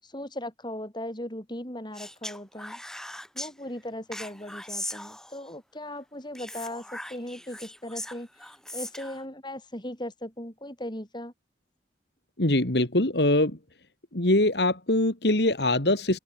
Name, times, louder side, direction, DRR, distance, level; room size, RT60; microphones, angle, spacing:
voice 1, 0.0-2.8 3.3-11.3, left 1 dB, 25° left, 7.9 m, -38 dB
Speech, 1.9-3.5 4.1-5.5 6.3-9.2, left 1 dB, 5° left, 2.2 m, -39 dB
voice 2, 12.4-13.6 14.1-16.2, left 1 dB, 65° left, 2.8 m, -23 dB
open air
head